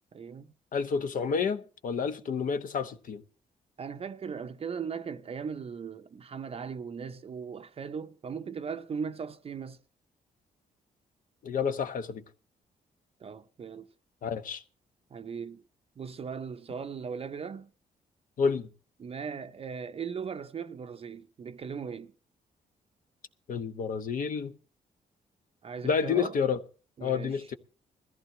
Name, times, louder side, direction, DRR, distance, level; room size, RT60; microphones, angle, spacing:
voice 1, 0.1-0.5 3.8-9.8 13.2-13.9 15.1-15.6 16.0-17.7 19.0-22.1 25.6-26.3 27.0-27.5, right 6 dB, 40° right, 0.6 m, -38 dB
voice 2, 0.7-3.2 11.4-12.2 14.2-14.6 18.4-18.7 23.5-24.5 25.8-26.6 27.0-27.5, left 6 dB, 65° left, 1.1 m, -29 dB
20.5 x 14.5 x 3.1 m
cardioid pair, 100°, 15 cm